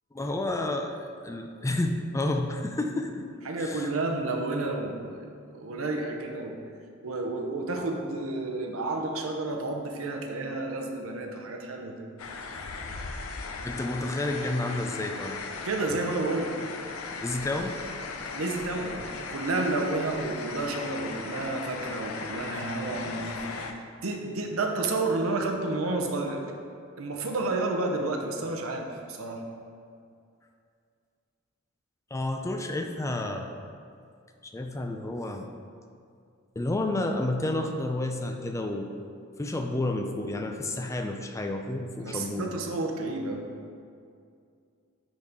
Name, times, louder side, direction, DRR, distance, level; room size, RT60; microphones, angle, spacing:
voice 1, 0.1-3.2 3.6-3.9 13.6-15.4 17.2-17.8 32.1-33.5 34.4-35.5 36.6-38.9 39.4-42.5, left 2 dB, 15° left, 4 dB, 0.4 m, -30 dB
voice 2, 3.4-6.6 7.0-12.1 15.6-16.6 18.3-26.4 27.0-29.5 42.0-43.5, right 2 dB, 75° right, 3 dB, 0.8 m, -31 dB
sound 1, 12.2-23.7, left 4 dB, 85° left, 0.6 m, -37 dB
10.0 x 4.0 x 3.6 m, 2.3 s
head